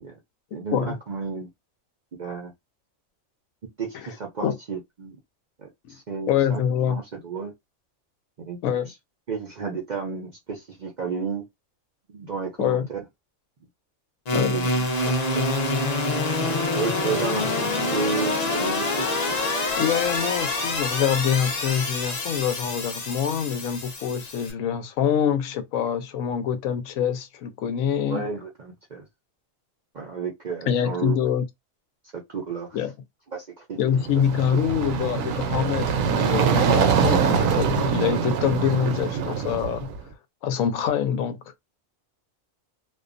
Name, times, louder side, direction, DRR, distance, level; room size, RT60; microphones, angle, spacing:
voice 1, 0.5-1.5 2.2-2.5 3.8-5.2 5.6-7.5 8.4-8.6 9.3-11.5 12.1-13.0 14.5-15.5 16.7-19.4 28.0-29.1 29.9-31.2 32.1-32.8 33.3-34.0, right 5 dB, 55° right, 0.5 m, -32 dB
voice 2, 6.3-7.0 8.6-8.9 12.6-12.9 14.3-14.6 19.8-28.3 30.7-31.5 32.7-32.9 33.8-39.9 40.4-41.4, left 8 dB, 85° left, 1.0 m, -25 dB
sound 1, 14.3-24.5, left 2 dB, 40° left, 0.6 m, -26 dB
sound 2, 34.0-40.0, right 6 dB, 80° right, 1.0 m, -23 dB
2.5 x 2.2 x 2.4 m
omnidirectional pair, 1.4 m